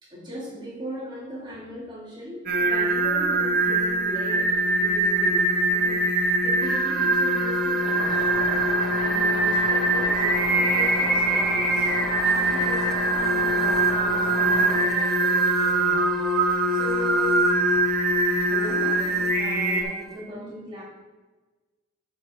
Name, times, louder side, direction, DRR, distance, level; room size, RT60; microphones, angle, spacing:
voice 1, 0.0-8.4 9.0-16.1 16.4-17.4 18.4-20.8, left 1 dB, 20° right, -6 dB, 2.4 m, -39 dB
Singing, 2.5-19.8, right 2 dB, 40° right, 0.9 m, -23 dB
sound 1, 6.6-20.2, right 2 dB, ahead, 0.7 m, -36 dB
sound 2, 8.0-14.9, left 3 dB, 65° left, 0.9 m, -34 dB
12.0 x 5.3 x 3.7 m, 1.3 s
head